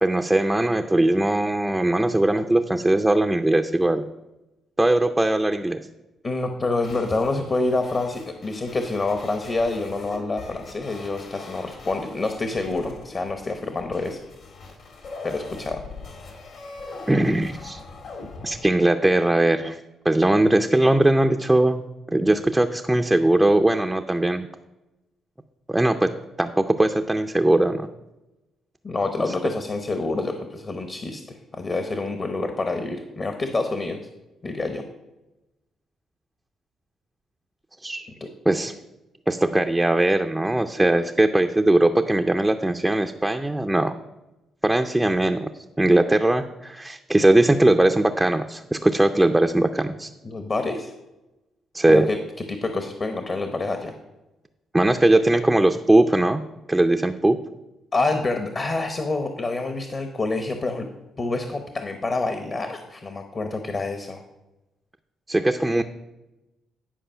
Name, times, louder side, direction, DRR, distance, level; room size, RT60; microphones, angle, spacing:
voice 1, 0.0-4.1 4.8-5.8 17.1-17.8 18.4-19.8 20.0-21.8 22.1-24.5 25.7-27.9 37.8-38.1 38.5-38.7 39.3-43.9 44.6-45.5 45.8-50.1 51.7-52.1 54.7-56.4 56.7-57.4 65.3-65.8, right 1 dB, 10° right, 5 dB, 0.4 m, -20 dB
voice 2, 6.2-14.2 15.2-15.9 28.8-31.2 31.5-34.0 34.4-34.8 38.2-38.3 50.2-50.9 51.9-52.2 52.5-53.9 57.9-60.9 61.2-64.2, left 3 dB, 35° left, 6 dB, 0.9 m, -27 dB
sound 1, 6.8-18.7, left 3 dB, 65° left, 2.2 m, -41 dB
10.0 x 4.9 x 5.6 m, 1.0 s
cardioid pair, 90°, 0 cm